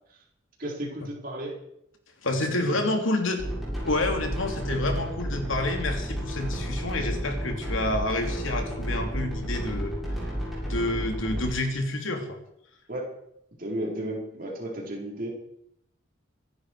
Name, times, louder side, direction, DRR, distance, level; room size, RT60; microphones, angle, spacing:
voice 1, 0.6-1.6 2.4-2.8 12.9-13.1 13.6-15.3, right 1 dB, 45° right, -2 dB, 5.0 m, -34 dB
voice 2, 2.2-3.4 3.8-9.9 10.6-12.4, left 2 dB, 85° left, 4 dB, 3.0 m, -28 dB
sound 1, 3.4-11.5, equal, ahead, 7.7 m, -32 dB
25.0 x 11.5 x 4.9 m, 0.76 s
head